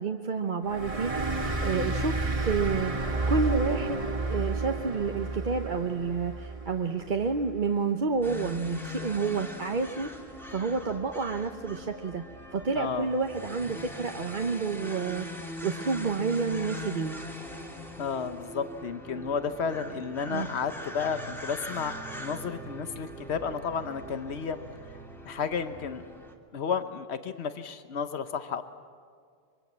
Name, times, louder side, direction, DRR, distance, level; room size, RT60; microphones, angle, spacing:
voice 1, 0.0-1.3 1.6-2.9 3.3-4.0 4.3-10.1 10.5-12.2 12.5-17.2 20.3-20.5, right 4 dB, 50° right, 4 dB, 1.0 m, -29 dB
sound 1, 0.7-7.8, right 3 dB, 35° right, 2.1 m, -31 dB
voice 2, 1.6-1.9 12.7-13.1 18.0-24.6 25.3-26.1 26.5-28.6, left 6 dB, 90° left, 10 dB, 1.2 m, -32 dB
sound 2, 8.2-26.4, left 1 dB, ahead, 2.4 m, -41 dB
24.0 x 23.5 x 7.4 m, 2.1 s
omnidirectional pair, 1.1 m